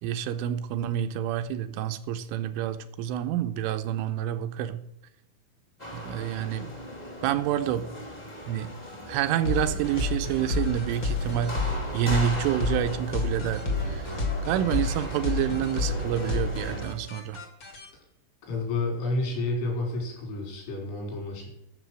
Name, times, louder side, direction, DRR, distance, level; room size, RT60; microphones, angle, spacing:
voice 1, 0.0-4.8 5.9-6.7 7.2-7.9 8.5-8.7 9.1-17.4, right 10 dB, 85° right, 9 dB, 3.0 m, -28 dB
sound 1, 5.8-16.8, equal, 25° left, 0.8 m, -39 dB
sound 2, 9.4-17.9, left 3 dB, 60° left, 1.2 m, -30 dB
voice 2, 18.4-21.5, left 2 dB, 80° left, 0 dB, 6.8 m, -30 dB
13.0 x 7.0 x 6.1 m, 0.83 s
omnidirectional pair, 5.8 m